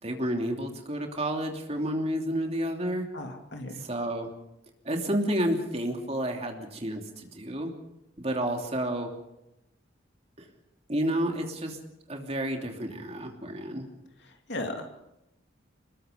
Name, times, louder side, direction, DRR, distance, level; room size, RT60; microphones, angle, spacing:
voice 1, 0.0-3.1 3.7-4.3 4.8-7.7 8.2-9.1 10.4-10.5 10.9-11.8 12.1-13.9, right 1 dB, 30° right, 3 dB, 3.0 m, -30 dB
voice 2, 3.1-3.8 14.5-15.0, left 1 dB, 60° left, 4 dB, 2.7 m, -36 dB
25.0 x 21.0 x 5.2 m, 0.89 s
head